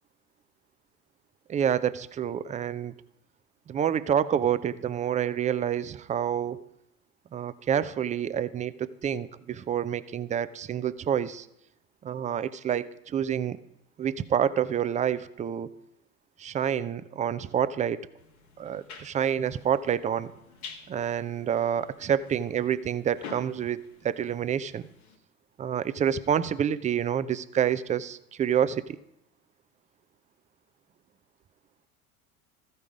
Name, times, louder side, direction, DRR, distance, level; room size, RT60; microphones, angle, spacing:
voice 1, 1.5-2.9 3.7-6.6 7.3-11.5 12.0-13.6 14.0-15.7 16.4-18.0 18.6-20.3 20.9-24.9 25.6-29.0, right 9 dB, 20° right, 14 dB, 0.4 m, -28 dB
sound 1, 18.2-25.2, left 5 dB, 80° left, 1.3 m, -49 dB
14.0 x 5.4 x 4.9 m, 0.80 s
hypercardioid pair, 70°, 43 cm